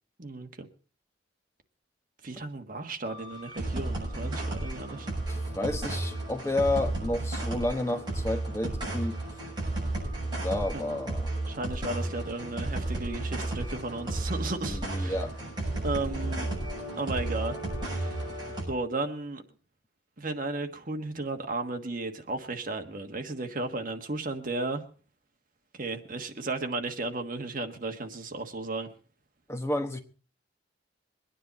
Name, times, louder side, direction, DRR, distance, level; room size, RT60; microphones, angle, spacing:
voice 1, 0.2-0.7 2.2-5.1 10.7-10.8 11.5-15.2 15.8-16.5 17.0-18.2 18.6-19.4 20.2-24.8 25.7-28.9, right 2 dB, 45° right, 5 dB, 1.4 m, -34 dB
sound 1, 3.0-18.6, right 2 dB, 25° right, 7.3 m, -33 dB
voice 2, 5.3-9.1 10.4-11.3 14.6-15.3 29.5-30.0, left 1 dB, 15° left, 6 dB, 1.1 m, -31 dB
23.0 x 10.0 x 4.1 m, 0.39 s
head